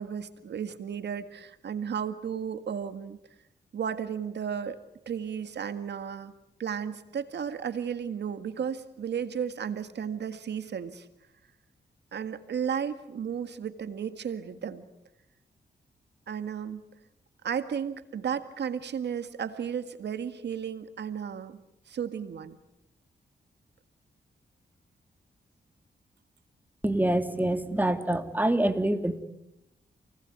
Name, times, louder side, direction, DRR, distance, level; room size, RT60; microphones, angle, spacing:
voice 1, 0.0-3.2 3.7-4.8 5.1-6.3 6.6-11.1 12.1-14.8 16.3-16.8 17.4-21.6 21.9-22.6, right 7 dB, 85° right, 10 dB, 1.9 m, -34 dB
voice 2, 26.8-29.2, right 1 dB, 10° right, 7 dB, 3.0 m, -26 dB
28.5 x 20.0 x 9.5 m, 0.87 s
cardioid pair, 65°, 17 cm